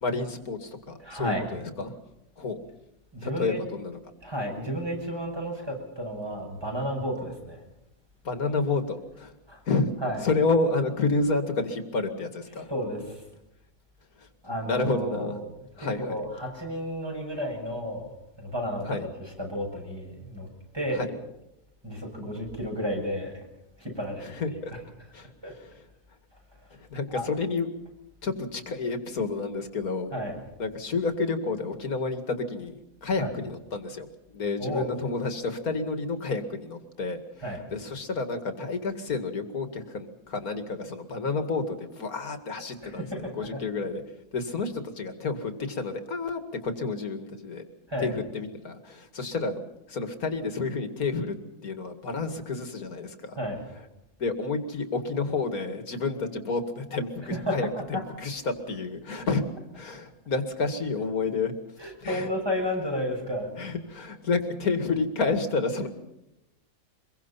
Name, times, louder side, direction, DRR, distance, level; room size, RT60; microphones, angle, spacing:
voice 1, 0.0-2.0 2.4-2.6 3.2-4.0 8.2-9.3 9.7-9.9 10.2-12.7 14.2-14.3 14.6-15.4 15.8-16.2 18.8-19.1 20.9-21.1 24.2-24.7 25.1-25.8 26.7-27.7 28.2-30.1 30.6-32.8 33.0-34.1 34.3-44.0 44.3-47.7 48.0-49.6 49.9-51.4 51.6-53.4 54.2-59.4 59.7-61.5 61.8-62.3 63.6-65.9, left 3 dB, 90° left, 7 dB, 2.7 m, -30 dB
voice 2, 1.0-1.5 3.1-3.6 4.2-7.6 9.5-9.6 10.0-10.2 12.7-13.2 14.4-15.4 15.8-19.0 19.4-20.5 20.7-21.0 21.8-23.3 23.8-24.3 25.4-25.5 27.1-27.3 30.1-30.4 33.2-33.3 34.6-34.9 37.4-37.6 42.8-43.6 47.9-48.1 53.4-53.6 57.3-57.6 57.9-58.0 61.8-63.5, equal, 15° right, 0 dB, 7.3 m, -32 dB
25.0 x 22.5 x 5.8 m, 0.89 s
omnidirectional pair, 1.5 m